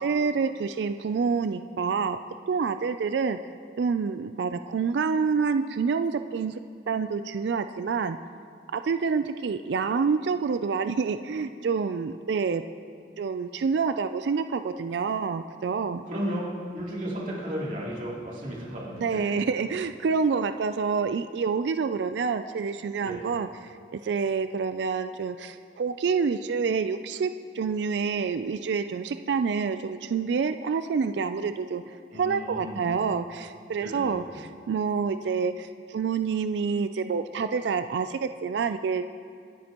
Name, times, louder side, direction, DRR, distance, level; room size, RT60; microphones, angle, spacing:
voice 1, 0.0-2.2 2.5-3.4 3.8-6.6 6.9-8.2 8.7-12.6 13.2-16.1 19.0-39.1, right 5 dB, 70° right, 10 dB, 0.4 m, -27 dB
voice 2, 16.0-16.4 16.7-19.5 23.0-23.2 32.1-32.9 33.8-34.4, equal, 45° right, -6 dB, 3.0 m, -34 dB
26.5 x 9.5 x 3.0 m, 2.3 s
head